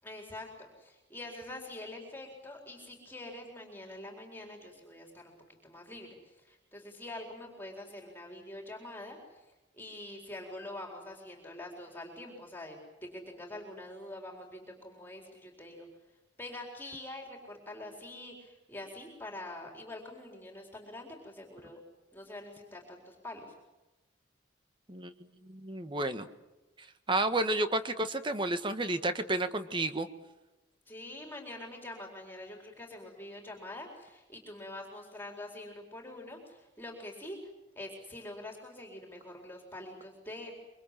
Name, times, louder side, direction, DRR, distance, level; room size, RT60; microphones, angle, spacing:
voice 1, 0.0-5.3 5.6-9.4 9.7-15.9 16.4-21.8 22.1-23.5 30.9-37.4 37.8-40.5, left 1 dB, 10° left, 1 dB, 4.4 m, -45 dB
voice 2, 25.4-26.3 27.1-30.1, right 2 dB, 25° right, 9 dB, 1.5 m, -31 dB
25.5 x 24.5 x 7.6 m, 1.0 s
head